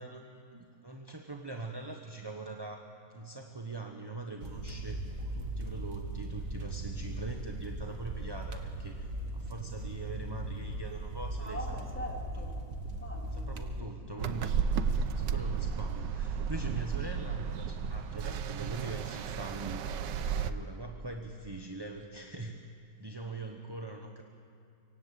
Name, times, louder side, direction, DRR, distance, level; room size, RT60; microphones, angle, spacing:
voice 1, 0.0-5.0 5.3-9.1 9.3-11.8 13.4-22.5 23.0-24.2, right 2 dB, 15° right, 3 dB, 1.0 m, -42 dB
sound 1, 4.4-13.8, right 2 dB, 45° right, 1.8 m, -38 dB
voice 2, 11.4-13.6, equal, 5° left, 0 dB, 3.0 m, -43 dB
sound 2, 14.2-20.5, right 6 dB, 70° right, 1.4 m, -33 dB
25.0 x 24.5 x 8.4 m, 2.5 s
omnidirectional pair, 2.1 m